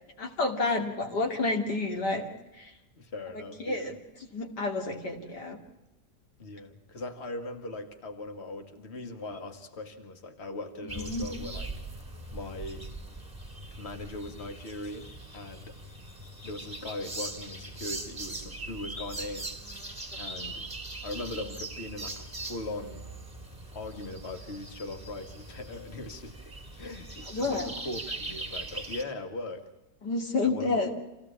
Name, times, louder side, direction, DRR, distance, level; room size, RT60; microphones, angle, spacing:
voice 1, 0.2-2.3 2.6-2.7 3.6-4.0 4.3-5.6 11.0-11.2 27.3-27.6 30.0-30.9, left 3 dB, 90° left, 3 dB, 3.3 m, -29 dB
voice 2, 3.0-4.0 6.4-11.7 12.3-12.9 13.8-15.8 16.4-19.5 20.2-20.7 21.0-23.0 23.7-29.7 30.4-30.9, left 2 dB, 40° left, 6 dB, 2.2 m, -40 dB
sound 1, 10.9-29.0, right 2 dB, 10° right, 2.3 m, -41 dB
26.0 x 16.5 x 8.6 m, 0.99 s
omnidirectional pair, 1.8 m